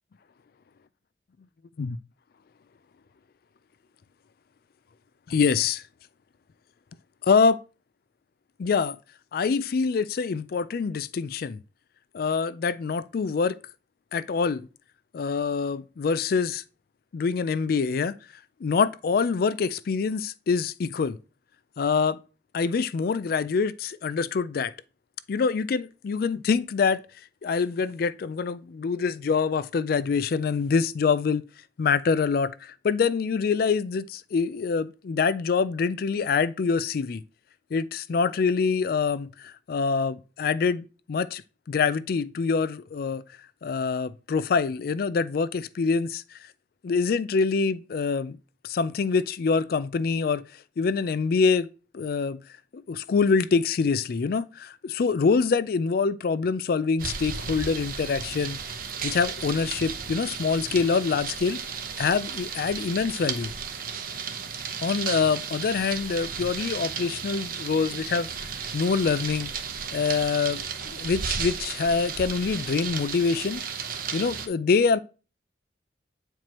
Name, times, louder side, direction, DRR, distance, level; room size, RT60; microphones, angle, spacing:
voice 1, 5.3-5.8 7.3-7.6 8.6-9.0 9.3-11.6 12.1-13.6 14.1-14.7 15.1-16.6 17.1-18.1 18.6-21.2 21.8-22.2 22.5-24.7 25.3-27.0 27.4-31.4 31.8-37.2 37.7-41.4 41.7-43.2 43.6-46.2 46.8-48.4 48.6-50.4 50.8-51.7 51.9-52.4 52.7-58.6 59.0-61.6 62.0-63.5 64.8-68.3 68.7-69.5 69.9-73.6 74.1-75.0, left 5 dB, 55° left, 0.4 m, -25 dB
sound 1, 57.0-74.5, right 6 dB, 50° right, 0.8 m, -34 dB
8.8 x 4.5 x 3.0 m
head